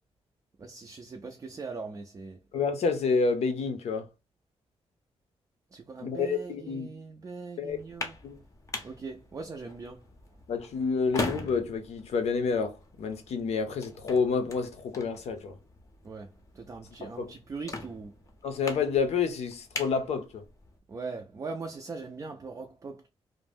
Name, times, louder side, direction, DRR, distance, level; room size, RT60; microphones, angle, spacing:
voice 1, 0.6-2.4 5.7-8.2 8.8-10.1 16.0-18.2 20.9-23.1, right 4 dB, 30° right, 0.3 m, -41 dB
voice 2, 2.5-4.1 6.0-6.9 7.6-7.8 8.2-8.4 10.5-15.6 17.0-17.3 18.4-20.4, left 5 dB, 75° left, 0.6 m, -29 dB
sound 1, 7.7-20.8, left 2 dB, 30° left, 0.6 m, -42 dB
2.5 x 2.1 x 3.4 m
wide cardioid pair, 140°, 11 cm